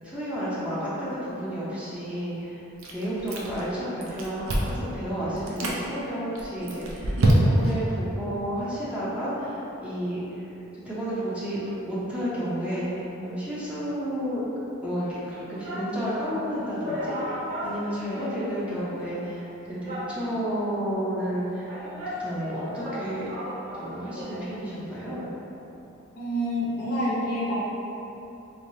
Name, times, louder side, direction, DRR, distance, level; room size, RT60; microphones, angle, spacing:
voice 1, 0.0-2.6 2.9-10.4 10.7-14.4 14.8-21.7 22.2-23.3 23.8-25.3, equal, 5° right, -10 dB, 0.6 m, -31 dB
Chewing mastication, 2.8-3.7 4.0-4.8 5.4-5.8 6.4-7.8, right 1 dB, 80° right, 0.5 m, -25 dB
sound 1, 15.0-16.0 16.4-16.5 16.8-18.8 19.1-19.2 19.9-20.6 21.3-24.5 24.8-24.9, equal, 40° right, 0.9 m, -36 dB
voice 2, 26.2-27.5, equal, 55° left, -8 dB, 0.7 m, -27 dB
3.3 x 3.2 x 2.7 m, 3.0 s
head